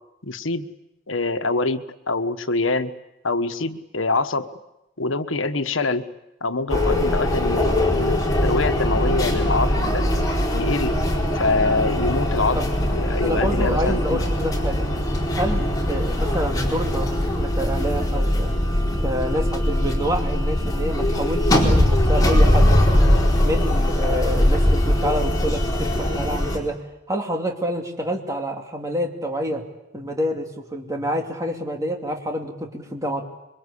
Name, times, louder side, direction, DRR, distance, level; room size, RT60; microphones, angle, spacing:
voice 1, 0.2-0.7 1.1-2.9 3.2-4.5 5.0-6.1 6.4-10.1 10.5-11.0 11.4-12.6 12.9-14.2 15.5-15.6, left 3 dB, 90° left, 10 dB, 1.3 m, -25 dB
sound 1, 6.7-26.6, left 1 dB, 20° left, 4.3 m, -21 dB
voice 2, 13.2-14.8 15.3-18.5 19.0-22.7 23.4-26.8 27.1-29.6 29.9-33.2, equal, 15° right, 2 dB, 2.7 m, -28 dB
26.5 x 23.5 x 8.5 m, 0.92 s
head